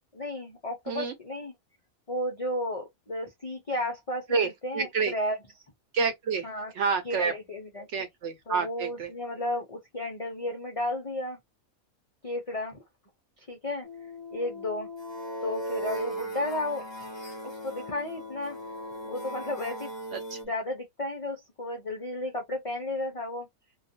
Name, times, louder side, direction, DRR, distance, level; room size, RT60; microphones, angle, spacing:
voice 1, 0.1-1.5 2.1-5.4 6.4-6.7 7.1-7.2 7.5-7.9 8.5-11.4 12.2-12.8 13.5-13.9 14.3-14.9 15.4-16.8 17.6-18.6 19.0-19.9 20.5-23.5, left 1 dB, 55° left, 0.3 m, -33 dB
voice 2, 4.3-5.1 5.9-6.5 6.7-7.3 7.9-9.1 20.1-20.5, right 5 dB, 65° right, 0.9 m, -29 dB
sound 1, 13.8-20.4, equal, 25° left, 0.7 m, -38 dB
2.3 x 2.3 x 2.7 m
omnidirectional pair, 1.5 m